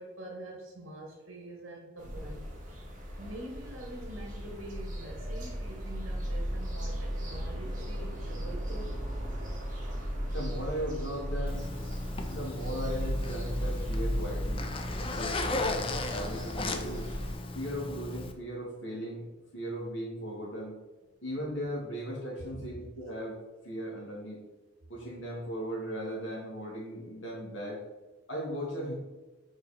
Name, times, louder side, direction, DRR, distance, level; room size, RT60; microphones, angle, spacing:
voice 1, 0.0-2.4 3.2-9.0 22.5-22.7, right 1 dB, 70° right, -1 dB, 1.3 m, -45 dB
sound 1, 2.0-17.3, equal, 40° right, 1.8 m, -36 dB
sound 2, 4.8-14.0, right 2 dB, 15° right, 0.6 m, -56 dB
voice 2, 10.3-11.7 12.3-14.7 15.1-17.1 17.5-20.7 21.2-23.4 23.6-24.4 24.9-27.8 28.3-28.9, equal, 65° left, -3 dB, 2.0 m, -37 dB
Zipper (clothing), 11.5-18.3, left 2 dB, 25° left, 0.4 m, -36 dB
5.5 x 4.5 x 4.2 m, 1.1 s
head